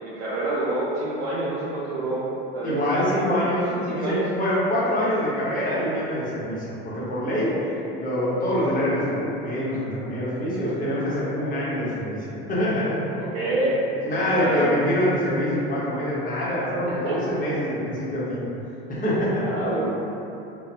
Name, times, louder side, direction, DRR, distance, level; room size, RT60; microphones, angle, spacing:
voice 1, 0.0-2.7 3.0-3.3 3.7-4.2 7.6-7.9 13.2-14.7 16.9-17.2 19.5-19.9, right 2 dB, 75° right, -8 dB, 0.5 m, -28 dB
voice 2, 2.6-3.7 3.9-7.5 8.0-13.0 14.1-18.4 18.9-19.5, equal, 30° left, -9 dB, 0.9 m, -25 dB
2.2 x 2.1 x 2.8 m, 2.9 s
hypercardioid pair, 90°, 30 cm